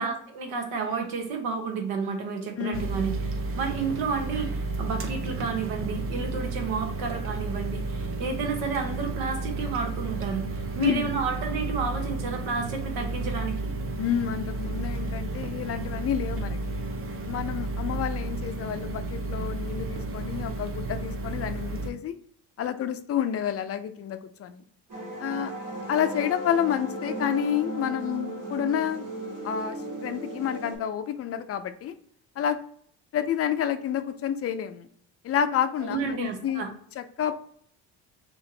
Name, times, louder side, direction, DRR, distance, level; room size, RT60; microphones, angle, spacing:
voice 1, 0.0-13.7 35.8-36.7, right 5 dB, 75° right, 4 dB, 1.0 m, -31 dB
voice 2, 2.6-2.9 10.8-11.1 14.0-16.6 17.2-22.1 22.6-24.6 25.2-25.5 25.9-29.0 29.4-29.8 30.0-31.9 32.4-32.6 33.1-34.9 35.2-36.7 37.0-37.3, left 9 dB, 40° left, 10 dB, 0.5 m, -29 dB
sound 1, 2.7-21.9, right 2 dB, 35° right, 0.6 m, -32 dB
sound 2, 24.9-30.8, right 2 dB, 55° right, 1.5 m, -36 dB
3.1 x 2.6 x 3.8 m, 0.63 s
supercardioid pair, 75°, 37 cm